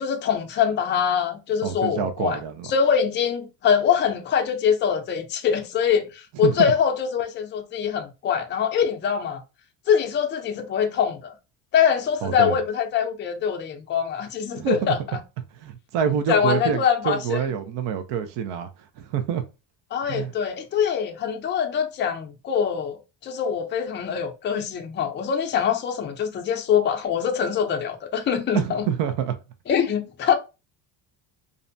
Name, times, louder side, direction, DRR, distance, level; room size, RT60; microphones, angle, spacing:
voice 1, 0.0-2.4 2.7-9.4 9.9-11.3 11.7-15.0 16.3-17.4 19.9-28.8 29.7-30.3, left 7 dB, 25° left, 0.4 m, -23 dB
voice 2, 1.6-2.7 6.4-6.7 12.2-12.6 14.5-15.0 15.5-18.7 19.0-19.4 20.0-20.3 28.5-29.3, right 8 dB, 70° right, 0.6 m, -26 dB
2.5 x 2.1 x 2.6 m
cardioid pair, 115°, 45 cm